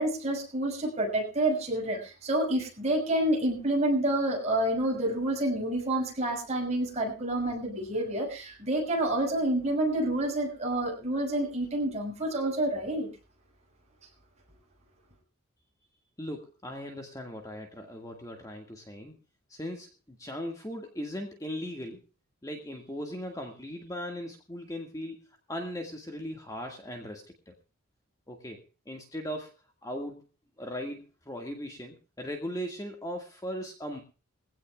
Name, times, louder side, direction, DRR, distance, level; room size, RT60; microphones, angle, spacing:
voice 1, 0.0-13.1, right 1 dB, 30° right, 0 dB, 6.3 m, -28 dB
voice 2, 16.2-19.1 19.5-22.0 22.4-27.5 28.3-28.6 28.9-29.5 29.8-30.2 30.6-34.0, equal, 15° left, 2 dB, 1.9 m, -38 dB
22.5 x 16.5 x 2.4 m, 0.33 s
head